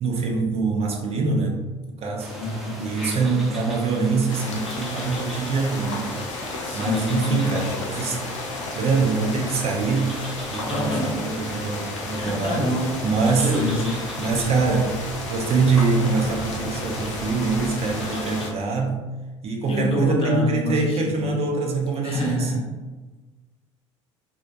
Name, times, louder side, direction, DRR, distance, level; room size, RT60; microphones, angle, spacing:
voice 1, 0.0-1.6 2.0-2.3 2.8-6.2 6.7-8.4 8.7-10.2 10.5-13.6 14.2-19.0 19.4-22.5, right 4 dB, 40° right, 1 dB, 0.5 m, -24 dB
sound 1, 2.2-18.5, equal, ahead, 0.7 m, -38 dB
voice 2, 2.4-2.9 6.6-7.8 10.7-11.2 12.1-13.0 13.4-14.0 19.7-21.4 22.0-22.6, left 2 dB, 40° left, -2 dB, 0.7 m, -27 dB
sound 2, 4.3-18.5, left 3 dB, 80° left, 0.4 m, -33 dB
2.3 x 2.1 x 2.6 m, 1.3 s
hypercardioid pair, 65°, 16 cm